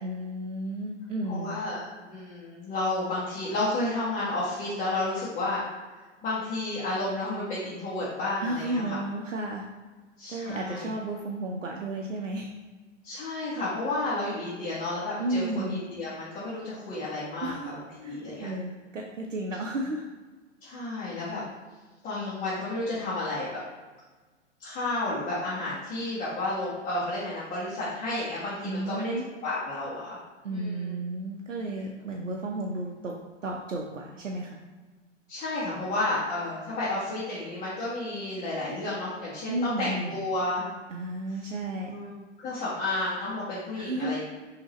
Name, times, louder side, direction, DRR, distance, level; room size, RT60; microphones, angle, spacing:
voice 1, 0.0-1.6 8.4-9.6 10.3-12.5 15.2-15.8 17.4-17.8 18.0-20.0 28.6-29.3 30.4-33.1 33.4-34.6 39.5-40.2 40.9-41.9 43.7-44.2, right 1 dB, 80° right, 0 dB, 0.6 m, -33 dB
voice 2, 1.3-5.6 6.2-9.0 10.2-10.9 13.0-18.5 20.6-21.4 22.0-23.6 24.6-29.1 29.4-30.2 30.5-31.0 35.3-40.7 41.8-44.2, left 2 dB, 20° left, -8 dB, 1.2 m, -31 dB
6.0 x 2.8 x 3.1 m, 1.3 s
figure-of-eight pair, 105°, 37 cm